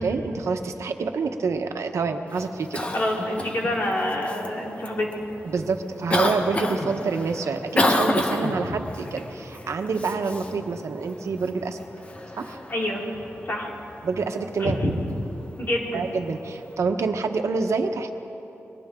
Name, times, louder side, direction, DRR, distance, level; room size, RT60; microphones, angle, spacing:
voice 1, 0.0-2.9 5.4-11.8 12.4-12.6 14.0-14.8 15.9-18.1, right 4 dB, 85° right, 5 dB, 1.2 m, -27 dB
Cough, 2.3-16.7, left 1 dB, 25° left, 1.4 m, -31 dB
voice 2, 2.9-5.1 12.7-13.0 13.4-13.7 14.6-14.9 15.6-16.0, left 1 dB, 50° left, -3 dB, 3.8 m, -26 dB
30.0 x 23.0 x 3.8 m, 3.0 s
wide cardioid pair, 145°, 5 cm